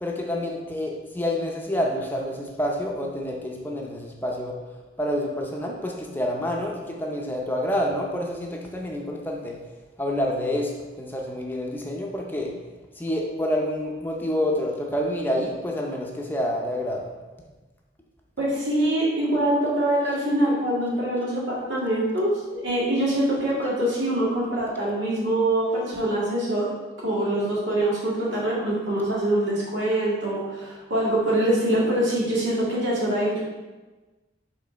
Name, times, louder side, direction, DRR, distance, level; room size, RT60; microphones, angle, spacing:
voice 1, 0.0-4.5 5.0-9.6 10.0-10.7 11.0-12.5 13.0-17.1, left 1 dB, 10° left, -1 dB, 0.6 m, -28 dB
voice 2, 18.4-26.7 27.0-33.4, right 1 dB, 90° right, -5 dB, 1.9 m, -24 dB
5.3 x 3.8 x 5.0 m, 1.2 s
head